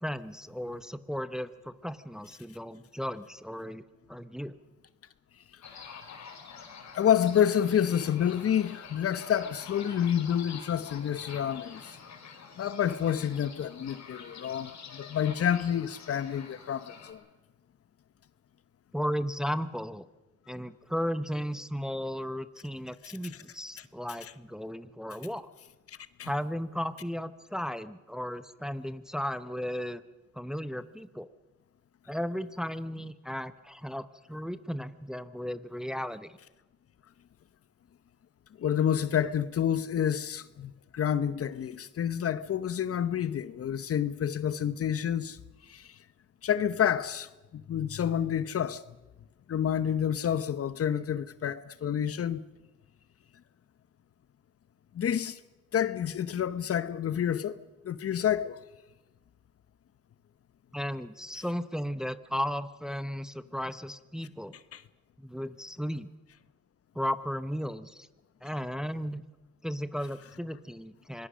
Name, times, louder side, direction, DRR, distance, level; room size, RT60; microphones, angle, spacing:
voice 1, 0.0-4.6 18.9-20.1 20.5-25.5 26.2-30.0 30.3-31.3 32.1-36.4 60.7-64.5 65.2-66.1 66.9-68.1 68.4-69.2 69.6-71.3, equal, ahead, 0.9 m, -35 dB
sound 1, 5.6-17.1, left 6 dB, 65° left, 4.4 m, -47 dB
voice 2, 6.9-12.0 12.6-17.2 25.9-26.3 38.6-45.4 45.7-46.0 46.4-48.8 49.5-52.4 54.9-55.4 55.7-57.6 57.8-58.6 64.7-64.8, left 9 dB, 50° left, 0.9 m, -29 dB
25.5 x 20.5 x 6.3 m
cardioid pair, 90°, 30 cm